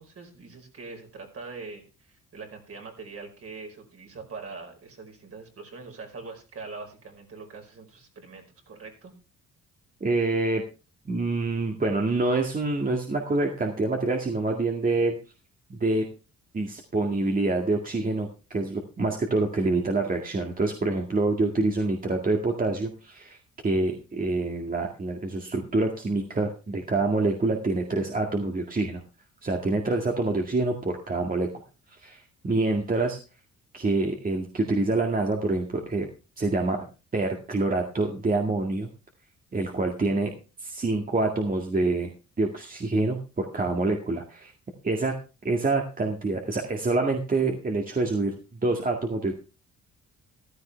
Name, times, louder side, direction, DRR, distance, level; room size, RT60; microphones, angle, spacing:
voice 1, 0.0-9.1, right 4 dB, 50° right, 2 dB, 5.1 m, -43 dB
voice 2, 10.0-10.6 11.1-15.2 15.7-16.1 16.5-23.4 23.6-29.0 29.4-31.5 32.0-33.2 33.7-36.1 36.4-36.8 37.1-38.9 39.5-40.3 40.6-42.1 42.4-44.5 44.8-45.2 45.4-49.3, right 2 dB, 30° right, 2 dB, 2.1 m, -26 dB
15.0 x 12.5 x 3.4 m, 0.32 s
cardioid pair, 90°, 30 cm